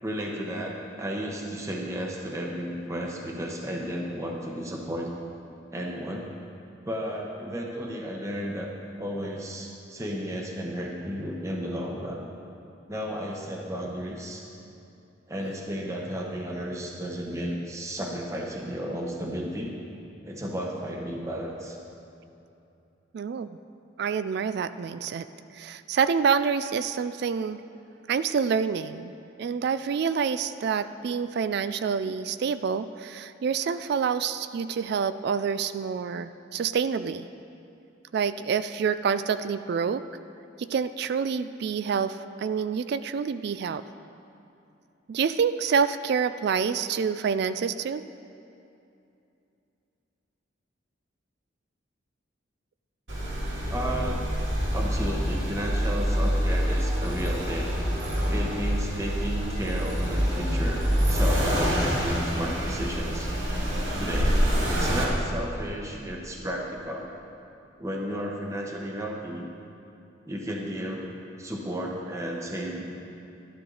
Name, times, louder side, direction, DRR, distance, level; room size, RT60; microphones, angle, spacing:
voice 1, 0.0-5.1 5.7-6.3 6.8-8.7 9.0-12.3 12.9-14.5 15.3-19.7 20.2-21.8 53.7-54.2 54.7-57.7 58.3-60.8 61.1-63.3 64.0-64.4 64.7-67.1 67.8-69.5 70.3-71.1 71.4-72.9, equal, 15° right, 0 dB, 0.9 m, -33 dB
voice 2, 23.1-23.5 24.0-25.3 25.5-27.6 28.1-29.1 29.4-37.3 38.1-40.0 40.6-43.8 45.1-48.0, right 6 dB, 55° right, 12 dB, 0.3 m, -27 dB
Accelerating revving vroom, 53.1-65.0, equal, 75° right, 2.4 m, -26 dB
12.0 x 12.0 x 3.9 m, 2.7 s
head